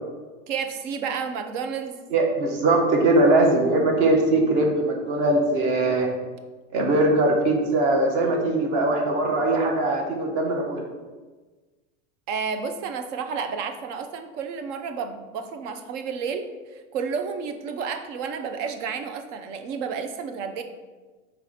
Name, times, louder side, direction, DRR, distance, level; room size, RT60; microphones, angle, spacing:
voice 1, 0.5-2.0 12.3-20.6, right 6 dB, 70° right, 7 dB, 0.9 m, -31 dB
voice 2, 2.1-6.1 6.7-10.8, right 2 dB, 45° right, 1 dB, 1.4 m, -21 dB
4.7 x 4.4 x 5.8 m, 1.3 s
supercardioid pair, 155°, 39 cm